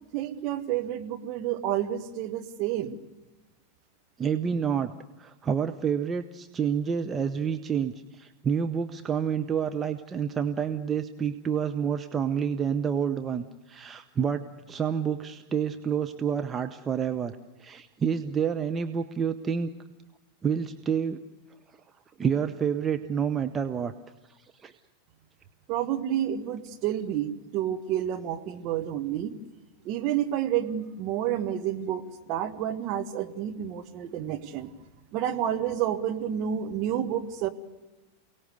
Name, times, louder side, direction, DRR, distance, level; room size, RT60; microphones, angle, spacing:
voice 1, 0.1-3.0 25.7-29.4 29.8-34.7 35.1-37.5, right 10 dB, 40° right, 9 dB, 1.5 m, -29 dB
voice 2, 4.2-4.9 5.2-19.7 20.4-21.2 22.2-23.9 24.4-24.7, right 7 dB, 20° right, 7 dB, 0.9 m, -28 dB
29.0 x 18.5 x 6.8 m, 1.1 s
figure-of-eight pair, 90°, 0 cm